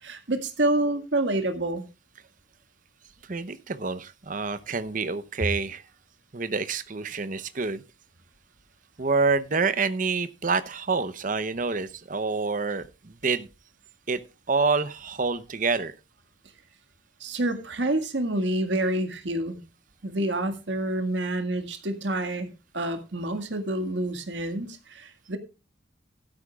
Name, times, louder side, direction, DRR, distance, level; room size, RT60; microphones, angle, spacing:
voice 1, 0.0-1.8 17.2-19.6 20.0-22.5 22.7-25.4, right 1 dB, 70° right, 1.9 m, -28 dB
voice 2, 3.2-5.8 6.3-7.8 9.0-13.5 14.1-14.2 14.5-15.9, right 4 dB, 45° right, 0.8 m, -27 dB
16.0 x 12.5 x 2.4 m
head